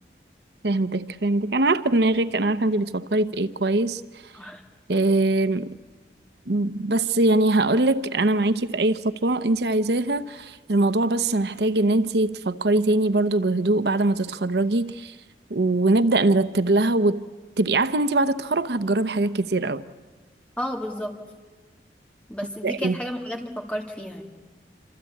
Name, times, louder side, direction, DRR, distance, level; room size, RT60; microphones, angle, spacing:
voice 1, 0.6-4.0 4.9-5.7 6.5-15.1 15.5-17.2 17.6-19.8 22.6-23.0, right 2 dB, 75° right, 0.8 m, -22 dB
voice 2, 20.6-21.1 22.3-24.2, equal, 5° left, 2.5 m, -32 dB
27.0 x 26.0 x 8.4 m
head